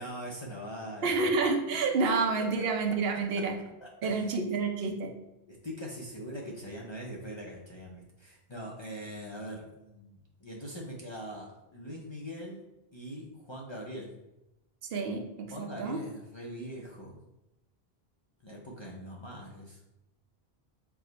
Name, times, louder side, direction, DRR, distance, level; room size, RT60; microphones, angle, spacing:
voice 1, 0.0-1.4 1.7-2.1 3.1-3.2 3.8-4.3 5.5-12.6 12.9-14.1 15.5-17.2 18.4-19.8, equal, 35° left, -3 dB, 0.5 m, -42 dB
voice 2, 1.0-3.6 4.0-5.1 14.9-16.0, right 4 dB, 70° right, 4 dB, 0.8 m, -29 dB
4.7 x 2.1 x 3.9 m, 0.92 s
omnidirectional pair, 1.1 m